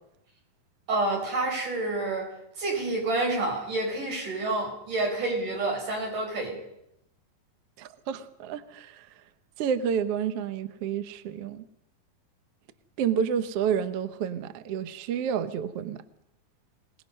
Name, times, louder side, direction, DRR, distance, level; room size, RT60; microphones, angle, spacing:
voice 1, 0.9-6.6, right 2 dB, 85° right, 7.3 m, -29 dB
voice 2, 7.8-9.0 9.6-11.6 13.0-16.0, right 8 dB, 65° right, 1.7 m, -29 dB
27.0 x 18.5 x 5.5 m
omnidirectional pair, 3.5 m